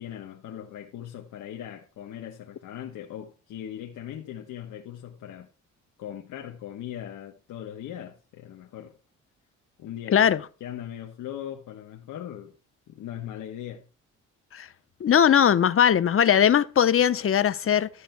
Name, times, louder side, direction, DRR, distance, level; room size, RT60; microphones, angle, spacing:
voice 1, 0.0-5.5 6.0-9.0 9.8-12.5 12.9-13.9, left 10 dB, 80° left, 1.4 m, -39 dB
voice 2, 10.1-10.4 14.5-14.7 15.0-17.9, left 9 dB, 45° left, 0.9 m, -20 dB
13.0 x 4.3 x 8.0 m
cardioid pair, 90°, 30 cm